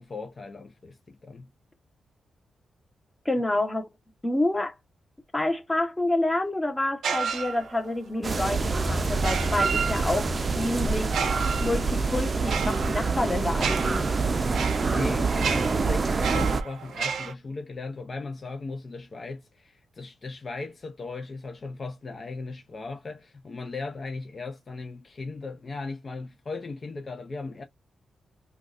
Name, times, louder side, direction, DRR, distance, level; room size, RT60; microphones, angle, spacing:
voice 1, 0.0-1.5 14.5-27.6, left 3 dB, 40° left, 0.6 m, -37 dB
voice 2, 3.2-3.9 4.2-4.7 5.3-10.3 10.5-11.2 11.6-14.1, left 1 dB, 15° left, 1.0 m, -28 dB
sound 1, 7.0-8.0 9.1-10.4 11.0-17.3, right 6 dB, 80° right, 0.6 m, -32 dB
sound 2, 8.2-16.6, right 3 dB, 40° right, 0.5 m, -26 dB
3.7 x 2.4 x 2.5 m
cardioid pair, 90°, 0 cm